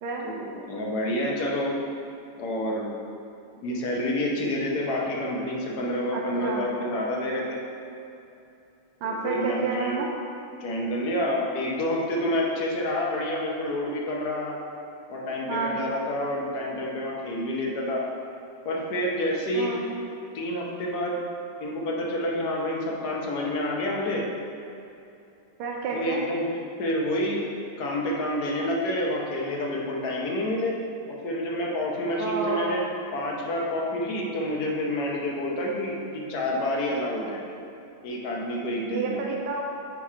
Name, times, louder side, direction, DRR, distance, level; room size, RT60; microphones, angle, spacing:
voice 1, 0.2-1.7 2.4-2.9 3.6-7.6 9.0-10.0 10.6-14.5 15.1-18.0 18.6-19.7 20.3-21.2 21.6-24.3 25.9-27.5 27.8-30.7 31.2-32.8 33.1-37.4 38.0-39.2, left 1 dB, 60° left, -2 dB, 1.3 m, -28 dB
voice 2, 6.1-6.7 9.0-10.1 15.5-15.8 19.5-19.8 25.6-26.2 32.2-32.8 38.9-39.6, right 4 dB, 80° right, -2 dB, 1.4 m, -30 dB
8.4 x 2.9 x 4.9 m, 2.7 s
omnidirectional pair, 2.3 m